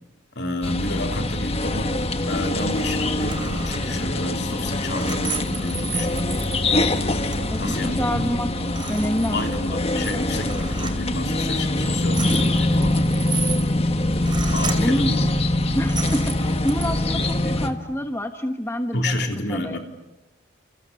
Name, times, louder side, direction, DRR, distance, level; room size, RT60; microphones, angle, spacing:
voice 1, 0.3-2.0 2.3-6.3 7.6-8.2 9.3-13.1 14.5-15.3 18.9-19.8, left 1 dB, 60° left, 4 dB, 3.3 m, -30 dB
sound 1, 0.6-17.7, left 1 dB, 30° left, 1.4 m, -24 dB
sound 2, 2.6-2.9 3.2-3.9 4.5-7.9 8.2-8.3 8.6-9.7 10.0-11.0 11.7-15.0 15.6-16.9, right 5 dB, 25° right, 2.9 m, -34 dB
voice 2, 7.5-8.5 8.9-10.3 14.7-15.1 15.7-19.2 19.5-19.8, equal, 15° left, 6 dB, 1.2 m, -27 dB
30.0 x 28.5 x 6.9 m, 0.94 s
head